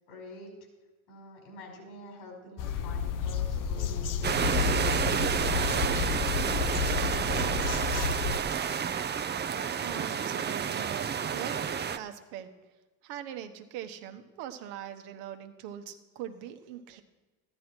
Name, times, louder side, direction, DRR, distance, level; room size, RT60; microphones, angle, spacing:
voice 1, 0.1-0.5 1.1-6.5 7.0-8.6, left 1 dB, 70° left, 1 dB, 5.3 m, -47 dB
sound 1, 2.6-8.4, left 7 dB, 50° left, 0.9 m, -31 dB
sound 2, 4.2-12.0, right 7 dB, 25° right, 0.6 m, -30 dB
voice 2, 9.7-12.5 13.0-17.0, right 10 dB, 75° right, 7 dB, 1.2 m, -41 dB
13.5 x 11.0 x 4.5 m, 1.2 s
supercardioid pair, 80°, 40 cm